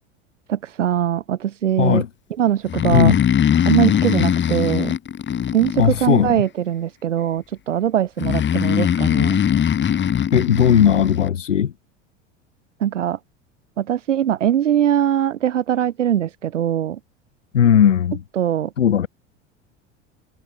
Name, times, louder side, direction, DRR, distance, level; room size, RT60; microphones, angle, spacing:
voice 1, 0.5-2.0 2.4-3.1 3.6-4.9 5.5-9.4 12.8-13.2 13.8-17.0 18.4-18.7, right 10 dB, 80° right, 0.9 m, -21 dB
Breathing, 2.7-6.4 8.2-11.3, left 9 dB, 30° left, 3.2 m, -20 dB
voice 2, 5.8-6.4 10.3-11.7 17.5-18.2 18.8-19.1, left 9 dB, 80° left, 1.5 m, -16 dB
figure-of-eight pair, 75°, 36 cm